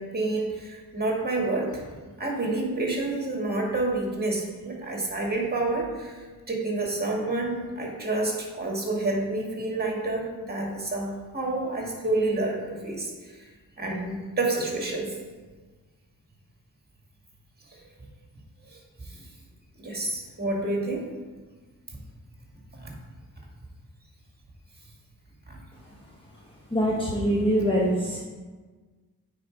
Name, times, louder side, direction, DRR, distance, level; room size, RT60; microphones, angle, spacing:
voice 1, 0.0-1.8 2.2-6.1 6.5-13.1 13.8-15.1 17.7-17.8 19.8-21.0 22.8-22.9 25.5-25.6, right 2 dB, 25° right, -1 dB, 2.0 m, -28 dB
voice 2, 26.7-28.2, equal, 15° left, -5 dB, 1.0 m, -24 dB
8.6 x 4.2 x 5.2 m, 1.4 s
wide cardioid pair, 85°, 36 cm